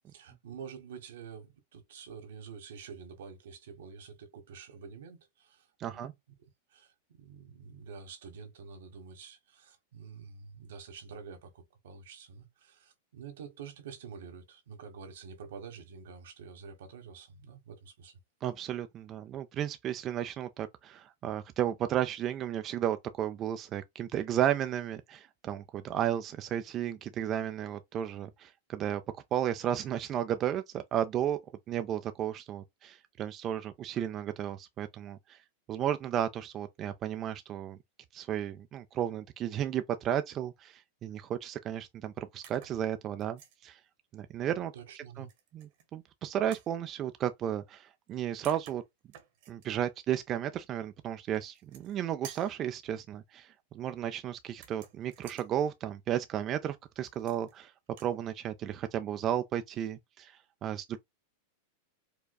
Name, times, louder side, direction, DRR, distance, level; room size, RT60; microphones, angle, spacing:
voice 1, 0.1-6.1 6.7-18.2 44.7-45.3, right 6 dB, 80° right, 1.2 m, -48 dB
voice 2, 5.8-6.1 18.4-29.0 29.3-31.4 31.7-35.4 35.7-37.8 38.1-43.8 44.1-44.7 45.2-45.3 45.5-48.8 49.5-57.7 58.0-61.0, right 10 dB, 30° right, 0.3 m, -33 dB
sound 1, 42.4-42.8 43.2-43.6 45.3-45.9 46.5-46.7 48.1-48.2 48.4-49.7 51.4-52.0 52.2-52.6 54.5-55.5 57.0-57.6 57.9-58.1, right 9 dB, 60° right, 1.2 m, -52 dB
4.7 x 2.3 x 2.2 m
supercardioid pair, 135°, 0 cm